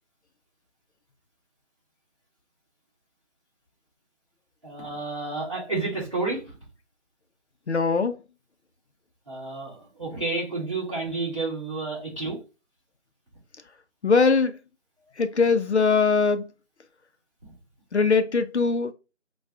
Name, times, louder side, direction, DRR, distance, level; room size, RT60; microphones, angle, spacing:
voice 1, 4.6-6.6 9.3-12.4, right 3 dB, 25° right, 1.4 m, -30 dB
voice 2, 7.7-8.2 14.0-14.5 15.2-16.5 17.9-18.9, left 4 dB, 70° left, 0.5 m, -21 dB
5.5 x 2.3 x 2.3 m
figure-of-eight pair, 170°, 35 cm